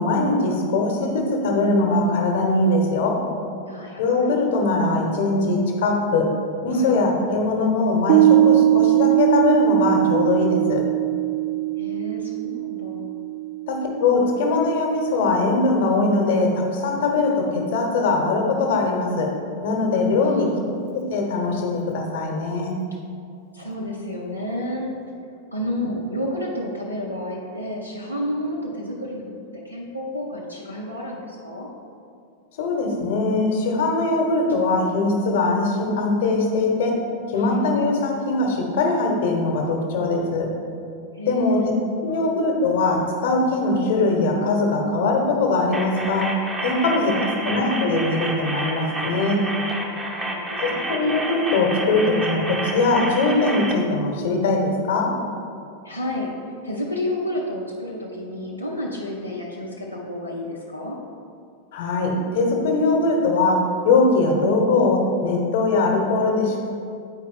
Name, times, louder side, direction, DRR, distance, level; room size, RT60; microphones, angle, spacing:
voice 1, 0.0-3.2 4.0-6.3 6.6-10.8 13.7-19.3 19.6-20.5 20.9-22.7 32.6-40.5 41.3-41.6 42.0-46.3 46.6-49.4 50.6-55.1 61.7-66.7, left 3 dB, 50° left, 1 dB, 1.1 m, -21 dB
voice 2, 3.7-4.3 6.7-7.0 11.8-13.1 20.2-20.4 23.5-24.9 25.5-31.7 37.3-37.6 41.1-41.6 42.1-42.3 46.8-47.6 50.2-50.9 55.8-56.3 56.6-61.0, left 1 dB, 90° left, -4 dB, 0.7 m, -31 dB
Piano, 8.1-14.9, right 15 dB, 50° right, 0.3 m, -20 dB
sound 1, 45.7-53.7, right 1 dB, 10° right, 0.8 m, -30 dB
8.8 x 4.6 x 3.7 m, 2.4 s
figure-of-eight pair, 90°, 0 cm